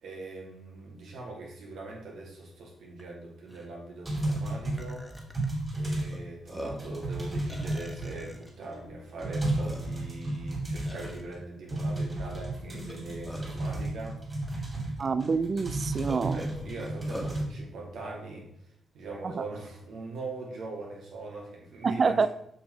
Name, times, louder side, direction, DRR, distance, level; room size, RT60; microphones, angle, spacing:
voice 1, 0.0-5.1 5.8-14.2 16.3-18.5 18.9-22.3, right 2 dB, 80° right, -2 dB, 2.6 m, -41 dB
Burping eructation, 3.0-3.1 3.5-3.7 4.3-4.4 4.8-5.5 6.1-6.2 6.5-6.9 7.5-8.5 9.2-9.3 9.6-10.1 10.9-11.2 12.7-13.6 14.5-14.6 15.0-15.1 16.1-17.4, equal, 5° left, 1.5 m, -42 dB
sound 1, 4.0-6.2 6.5-8.5 8.9-9.0 9.2-11.4 11.7-17.4, right 1 dB, 25° right, 3.0 m, -33 dB
voice 2, 15.0-16.4 19.4-19.5 21.8-22.3, right 4 dB, 45° right, 13 dB, 0.4 m, -26 dB
7.1 x 6.0 x 4.6 m, 0.75 s
cardioid pair, 90°, 0 cm